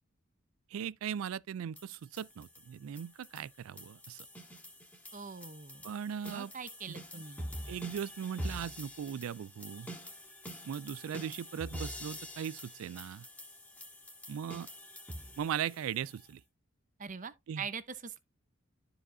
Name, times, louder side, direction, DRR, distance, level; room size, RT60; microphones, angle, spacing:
voice 1, 0.7-4.3 5.8-6.5 6.9-7.2 7.7-9.9 10.6-13.3 14.3-14.7 15.4-16.4 17.5-17.7, right 8 dB, 90° right, 0.3 m, -39 dB
sound 1, 1.8-16.3, equal, 10° left, 1.9 m, -46 dB
voice 2, 5.1-5.8 6.3-7.5 17.0-18.2, right 5 dB, 40° right, 0.7 m, -43 dB
12.5 x 5.0 x 2.6 m
head